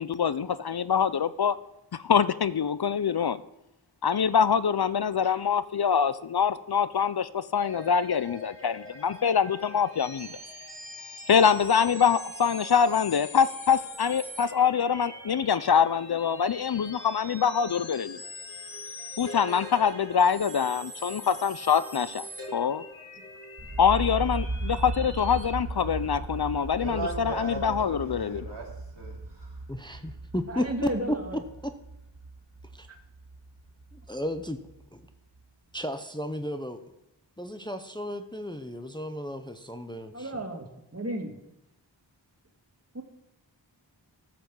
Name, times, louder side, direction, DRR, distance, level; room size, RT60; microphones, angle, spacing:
voice 1, 0.0-1.5 2.0-3.4 4.0-10.4 11.3-18.2 19.2-22.8 23.8-28.4, left 7 dB, 60° left, 15 dB, 0.5 m, -25 dB
sound 1, 7.5-25.4, left 1 dB, 30° left, 3.3 m, -43 dB
sound 2, 23.6-35.4, right 2 dB, 85° right, 2.1 m, -37 dB
voice 2, 26.7-29.6, right 2 dB, 70° right, 1 dB, 2.8 m, -37 dB
voice 3, 29.7-30.9 32.7-32.9 33.9-34.6 35.7-36.8 37.4-40.3, equal, 10° left, 8 dB, 0.7 m, -33 dB
voice 4, 30.5-31.4 32.9-33.0 40.1-40.7 40.9-41.4 42.9-43.0, right 1 dB, 35° right, 3 dB, 1.9 m, -33 dB
13.0 x 6.0 x 7.2 m, 0.85 s
wide cardioid pair, 50°, 44 cm